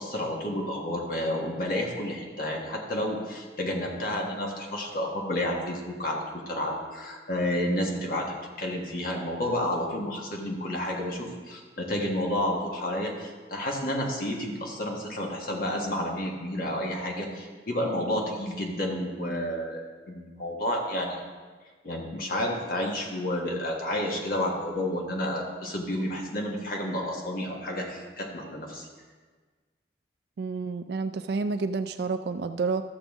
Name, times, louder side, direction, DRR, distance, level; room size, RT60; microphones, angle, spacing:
voice 1, 0.0-21.2 21.8-28.9, left 1 dB, 55° left, 0 dB, 1.5 m, -30 dB
voice 2, 30.4-32.8, right 4 dB, 65° right, 9 dB, 0.3 m, -29 dB
12.5 x 7.1 x 3.6 m, 1.4 s
head